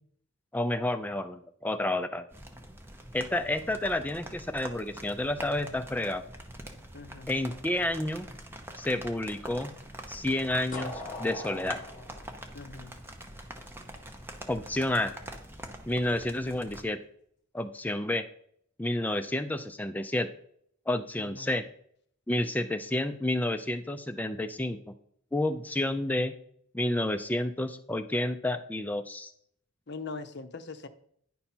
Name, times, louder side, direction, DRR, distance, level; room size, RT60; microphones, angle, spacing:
voice 1, 0.5-2.3 3.1-6.2 7.3-8.3 8.8-9.7 10.1-10.9 11.2-11.8 14.5-15.1 15.9-17.0 17.5-18.3 18.8-20.3 20.9-21.6 22.3-24.8 25.3-26.3 26.7-29.3, left 1 dB, 10° left, 9 dB, 0.3 m, -30 dB
sound 1, 2.3-16.8, right 1 dB, 10° right, 0.8 m, -45 dB
voice 2, 6.9-7.3 12.5-12.9 21.2-21.5 29.9-30.9, left 4 dB, 55° left, 9 dB, 0.7 m, -41 dB
sound 2, 10.7-13.6, left 1 dB, 35° left, 1.3 m, -41 dB
10.0 x 5.4 x 4.3 m, 0.66 s
head